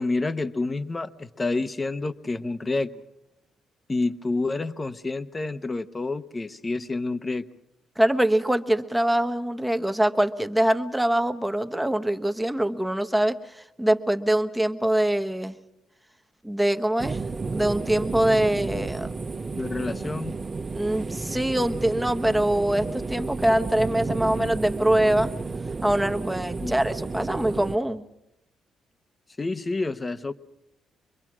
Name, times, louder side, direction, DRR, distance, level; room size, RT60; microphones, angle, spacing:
voice 1, 0.0-3.0 3.9-7.6 19.5-20.4 26.6-26.8 29.4-30.3, left 3 dB, 25° left, 11 dB, 1.0 m, -28 dB
voice 2, 8.0-15.6 16.4-17.2 17.5-19.1 20.7-25.3 25.8-28.1, right 1 dB, 5° right, 7 dB, 1.2 m, -24 dB
sound 1, 17.0-27.8, right 4 dB, 35° right, 1.3 m, -32 dB
25.0 x 22.5 x 6.1 m, 0.86 s
cardioid pair, 90°, 0 cm